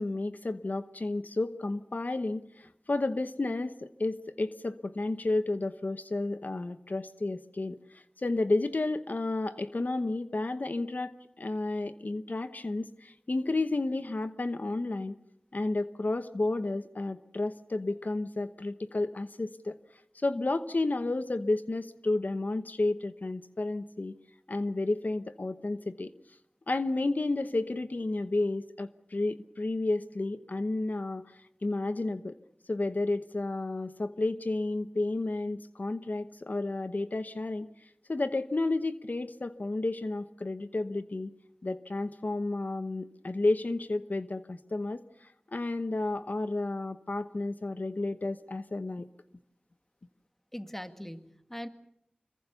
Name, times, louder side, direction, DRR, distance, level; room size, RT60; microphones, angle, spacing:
voice 1, 0.0-11.1 11.4-15.2 15.5-19.8 20.1-24.1 24.5-26.1 26.7-32.4 32.7-37.7 38.1-41.3 41.6-49.1, left 2 dB, 75° left, 12 dB, 0.9 m, -31 dB
voice 2, 50.5-51.7, equal, 10° left, 9 dB, 2.0 m, -41 dB
26.0 x 22.0 x 6.9 m, 0.76 s
wide cardioid pair, 40°, 3 cm